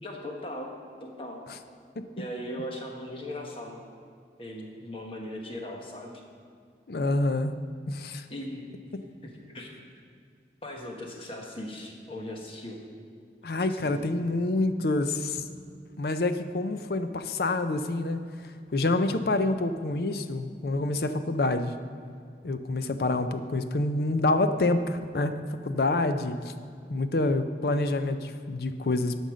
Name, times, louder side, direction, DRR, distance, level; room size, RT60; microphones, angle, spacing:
voice 1, 0.0-0.7 1.0-1.4 2.2-3.8 4.4-6.1 8.3-8.6 9.2-9.7 10.6-12.8 13.7-14.0, left 1 dB, 30° left, 0 dB, 1.3 m, -38 dB
voice 2, 6.9-7.6 7.9-8.2 13.4-15.4 16.0-18.2 18.7-21.7 22.4-26.5 26.9-29.2, left 2 dB, 60° left, 9 dB, 0.5 m, -27 dB
11.5 x 5.4 x 6.3 m, 2.3 s
head